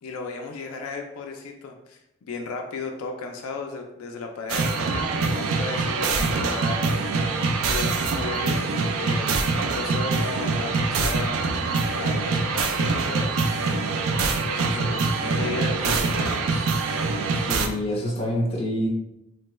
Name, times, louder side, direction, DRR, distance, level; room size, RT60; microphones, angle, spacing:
voice 1, 0.0-6.8 7.7-11.4 12.0-13.3 14.4-16.7, left 3 dB, 80° left, 2 dB, 0.4 m, -35 dB
sound 1, 4.5-17.7, right 4 dB, 75° right, 0.4 m, -24 dB
voice 2, 17.3-18.9, equal, 25° left, -3 dB, 0.8 m, -27 dB
3.2 x 2.2 x 3.0 m, 0.87 s
head